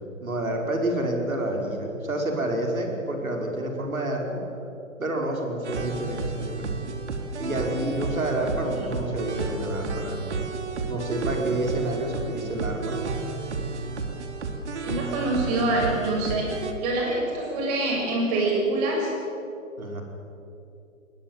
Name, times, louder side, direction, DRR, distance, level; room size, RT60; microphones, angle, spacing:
voice 1, 0.2-4.4 5.0-6.8 7.4-10.4 10.8-13.0 19.8-20.0, right 1 dB, 80° right, 1 dB, 5.3 m, -29 dB
sound 1, 5.6-16.7, right 4 dB, 55° right, 2.7 m, -31 dB
voice 2, 14.8-19.1, right 2 dB, 30° right, 0 dB, 6.6 m, -26 dB
22.0 x 20.0 x 7.6 m, 2.8 s
figure-of-eight pair, 140°, 41 cm